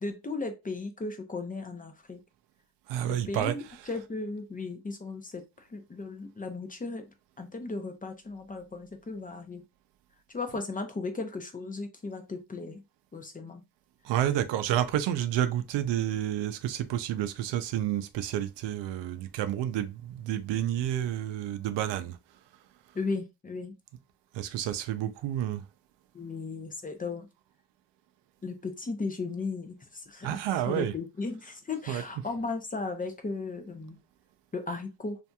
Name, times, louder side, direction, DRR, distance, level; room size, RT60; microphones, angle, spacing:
voice 1, 0.0-2.2 3.0-3.6 3.9-5.4 5.7-7.0 7.4-9.6 10.3-12.8 13.1-13.6 22.9-23.7 26.1-27.3 28.4-34.0 34.5-35.2, left 3 dB, 20° left, 0.5 m, -36 dB
voice 2, 2.9-4.0 14.0-22.2 24.3-25.6 30.2-30.9 31.9-32.0, right 11 dB, 85° right, 0.5 m, -30 dB
2.7 x 2.5 x 2.2 m
cardioid pair, 95°, 42 cm